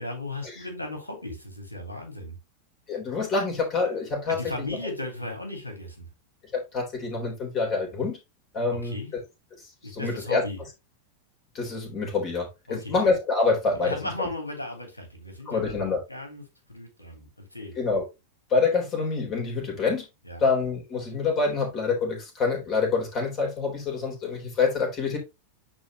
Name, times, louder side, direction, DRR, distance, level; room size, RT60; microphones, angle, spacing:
voice 1, 0.0-2.4 4.3-6.1 8.7-9.1 9.8-10.6 12.7-12.9 13.7-16.4 16.7-17.8 20.2-20.4, left 1 dB, 80° left, 3.1 m, -36 dB
voice 2, 2.9-4.8 6.5-8.2 8.5-9.0 9.9-10.4 11.5-14.0 15.5-16.0 17.8-18.0 18.5-20.0 20.4-25.2, left 4 dB, 30° left, 3.6 m, -26 dB
9.9 x 4.4 x 3.0 m
figure-of-eight pair, 90°, 0 cm